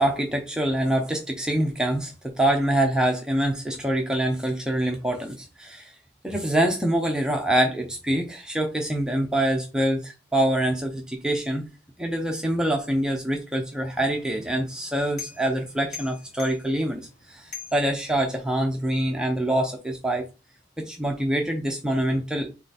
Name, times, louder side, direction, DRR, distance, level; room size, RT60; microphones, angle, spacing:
voice 1, 0.0-5.9 6.2-11.6 12.0-20.2 20.8-22.5, right 1 dB, 5° right, 1 dB, 0.5 m, -25 dB
sound 1, 14.0-18.7, left 6 dB, 40° left, 0.9 m, -44 dB
3.8 x 3.2 x 4.1 m, 0.29 s
head